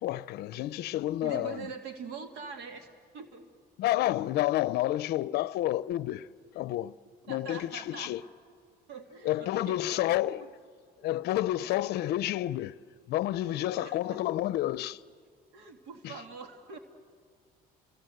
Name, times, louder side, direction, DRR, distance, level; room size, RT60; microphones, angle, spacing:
voice 1, 0.0-1.7 3.8-6.3 6.5-6.9 7.3-8.2 9.2-10.5 11.0-12.8 13.1-15.0 16.0-16.1, left 14 dB, 75° left, 0.5 m, -30 dB
voice 2, 1.2-2.9 3.1-3.5 7.3-8.1 8.9-10.1 10.4-10.5 11.3-11.8 13.5-14.2 15.5-16.8, right 5 dB, 90° right, 2.3 m, -44 dB
29.5 x 21.0 x 7.7 m
cardioid pair, 110°, 17 cm